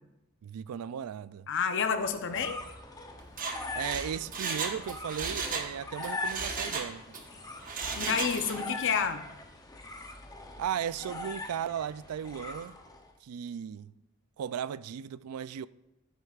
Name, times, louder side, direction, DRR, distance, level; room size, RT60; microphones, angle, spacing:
voice 1, 0.4-1.5 3.7-7.0 7.9-8.2 8.4-8.6 10.6-12.8 13.2-13.9 14.4-15.7, right 8 dB, 80° right, 0.3 m, -36 dB
voice 2, 1.5-2.6 8.0-9.2, left 6 dB, 55° left, 0.7 m, -29 dB
sound 1, 2.0-13.1, left 2 dB, 15° left, 0.7 m, -42 dB
Mechanisms, 3.2-5.7 6.0-7.2 7.6-8.7 9.0-9.1, right 4 dB, 40° right, 1.1 m, -35 dB
14.5 x 8.0 x 2.4 m
head